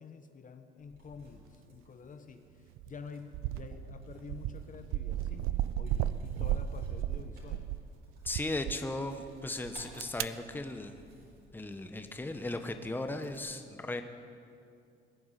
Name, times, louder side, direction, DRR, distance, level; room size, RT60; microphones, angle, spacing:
voice 1, 0.0-7.7, left 5 dB, 40° left, 8 dB, 1.0 m, -49 dB
sound 1, 0.8-13.4, right 1 dB, 50° right, 4.7 m, -57 dB
sound 2, 2.8-3.0 3.3-7.9 8.2-8.8 9.6-10.2, right 12 dB, 85° right, 0.5 m, -34 dB
voice 2, 8.2-11.0 11.5-14.0, left 2 dB, 10° left, 7 dB, 1.1 m, -37 dB
20.0 x 7.1 x 9.9 m, 2.4 s
cardioid pair, 95°, 21 cm